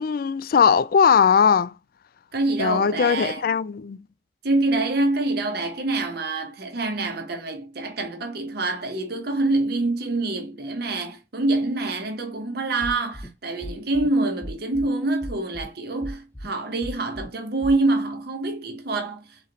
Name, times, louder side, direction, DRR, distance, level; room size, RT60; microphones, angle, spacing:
voice 1, 0.0-1.7 2.6-4.0, left 6 dB, 50° left, 0.3 m, -19 dB
voice 2, 2.3-3.4 4.4-19.4, right 2 dB, 55° right, 0.9 m, -26 dB
sound 1, 12.8-13.3 13.6-14.1 14.4-14.9 15.2-15.7 16.0-16.5 16.8-17.3 17.6-17.7, equal, 10° left, 0.8 m, -35 dB
4.0 x 3.1 x 3.9 m
head